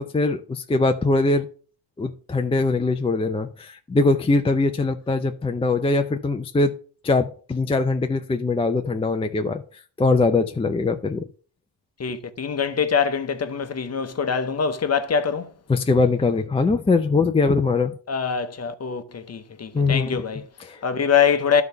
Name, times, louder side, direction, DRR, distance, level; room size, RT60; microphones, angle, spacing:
voice 1, 0.0-1.5 2.0-6.8 7.0-11.2 15.7-17.9 19.7-20.2 20.6-20.8, left 3 dB, 15° left, 0.4 m, -22 dB
voice 2, 12.0-15.5 18.1-20.4 20.8-21.6, left 6 dB, 35° left, 0.9 m, -24 dB
11.5 x 4.1 x 5.6 m
cardioid pair, 125°, 47 cm